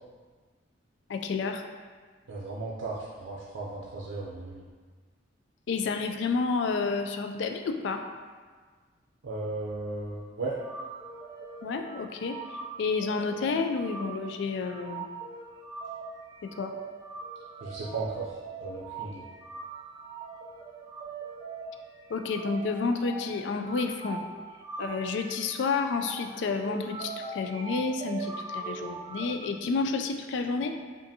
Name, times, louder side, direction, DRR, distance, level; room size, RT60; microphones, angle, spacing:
voice 1, 1.1-1.6 5.7-8.0 11.6-15.1 16.4-16.7 22.1-24.2 24.8-30.8, left 4 dB, 65° left, 6 dB, 0.3 m, -30 dB
voice 2, 2.3-4.6 9.2-10.6 17.6-18.3 18.6-19.2, right 3 dB, 80° right, -4 dB, 0.5 m, -35 dB
sound 1, 10.5-29.3, right 4 dB, 20° right, 0.4 m, -41 dB
5.0 x 2.5 x 2.7 m, 1.5 s
head